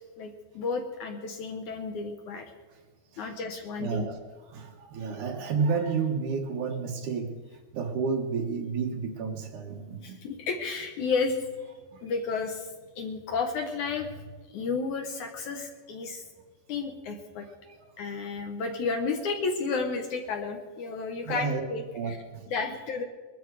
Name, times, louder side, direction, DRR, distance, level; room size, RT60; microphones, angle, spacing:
voice 1, 0.2-2.5 3.2-4.1 10.0-11.4 12.0-14.2 14.5-16.2 16.7-17.5 18.0-22.2 22.5-23.0, left 4 dB, 65° left, 5 dB, 2.2 m, -32 dB
voice 2, 3.8-4.2 4.5-7.4 7.7-10.2 11.9-12.0 17.7-17.8 21.3-21.6 21.9-22.5, right 5 dB, 60° right, 3 dB, 2.7 m, -31 dB
22.0 x 13.0 x 4.8 m, 1.5 s
omnidirectional pair, 4.3 m